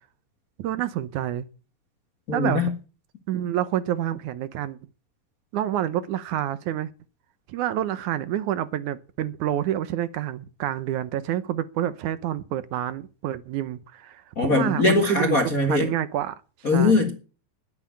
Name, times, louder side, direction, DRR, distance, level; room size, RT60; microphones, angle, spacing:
voice 1, 0.6-1.5 2.3-2.6 3.3-4.8 5.5-6.9 7.5-14.2 14.5-15.4 15.7-16.4 16.7-17.0, right 12 dB, 70° right, 2.0 m, -28 dB
voice 2, 2.3-2.7 14.3-15.9 16.6-17.1, left 3 dB, 40° left, 1.2 m, -21 dB
10.5 x 9.8 x 8.5 m
omnidirectional pair, 4.1 m